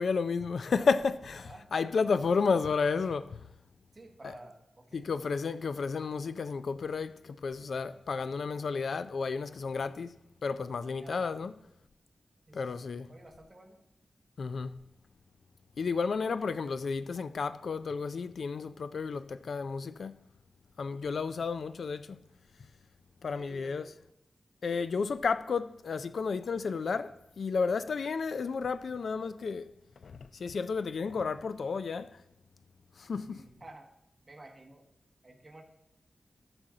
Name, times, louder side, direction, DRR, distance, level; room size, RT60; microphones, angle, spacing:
voice 1, 0.0-3.5 4.2-4.3 4.9-11.5 12.5-13.1 14.4-14.8 15.8-20.1 20.8-22.2 23.2-23.9 24.6-29.7 30.0-32.2 33.0-33.5, left 5 dB, 70° left, 0.4 m, -32 dB
voice 2, 1.4-1.7 3.9-5.1 11.0-11.4 12.5-12.8 13.1-13.8 16.4-16.7 23.3-23.9 33.3-33.9 34.3-34.8 35.2-35.6, right 1 dB, 25° right, 1.4 m, -52 dB
14.0 x 6.2 x 3.8 m
wide cardioid pair, 165°, 0 cm